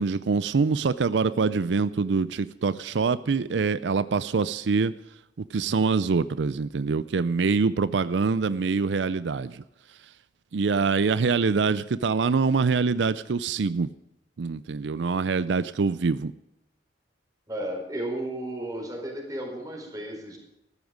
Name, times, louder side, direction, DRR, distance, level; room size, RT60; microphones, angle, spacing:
voice 1, 0.0-4.9 5.5-9.6 10.5-13.9 14.4-16.3, right 4 dB, 85° right, 16 dB, 0.5 m, -24 dB
voice 2, 17.5-20.4, right 1 dB, 20° right, 0 dB, 4.6 m, -33 dB
14.5 x 13.5 x 5.1 m, 0.89 s
head